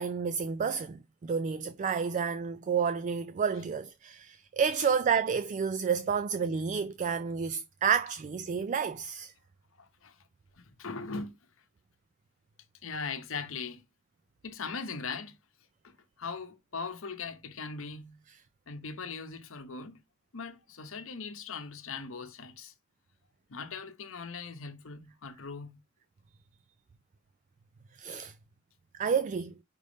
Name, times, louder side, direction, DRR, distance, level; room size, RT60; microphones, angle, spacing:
voice 1, 0.0-9.3 28.0-28.3 28.9-29.5, right 6 dB, 35° right, 0.3 m, -30 dB
voice 2, 9.8-10.2 10.6-11.4 12.8-13.8 14.4-15.4 15.8-18.3 18.7-20.0 20.3-22.7 23.5-25.8, left 4 dB, 65° left, 0.9 m, -40 dB
5.3 x 3.4 x 5.1 m
head